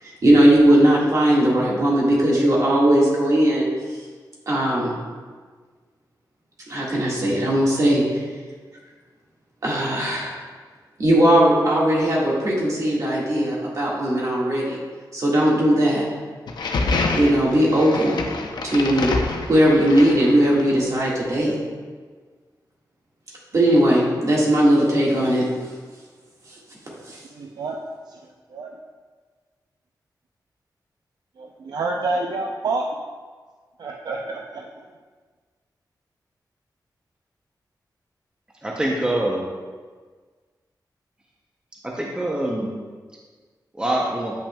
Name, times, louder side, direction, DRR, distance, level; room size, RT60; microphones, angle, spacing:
voice 1, 0.2-3.7 4.5-4.9 6.7-8.0 9.6-10.3 11.0-14.8 15.1-16.0 17.1-18.2 18.6-19.1 19.4-21.5 23.5-25.4 27.1-27.2, right 1 dB, 50° right, -5 dB, 1.7 m, -18 dB
sound 1, 16.5-20.8, left 3 dB, 75° left, 0.6 m, -27 dB
voice 2, 27.4-27.8 28.1-28.2 28.5-28.7 31.4-32.8 33.8-34.6, right 3 dB, 65° right, 1 dB, 0.4 m, -28 dB
voice 3, 38.6-39.4 41.9-42.7 43.8-44.3, right 1 dB, 10° right, -2 dB, 0.6 m, -24 dB
8.7 x 5.8 x 2.2 m, 1.5 s
wide cardioid pair, 175°, 8 cm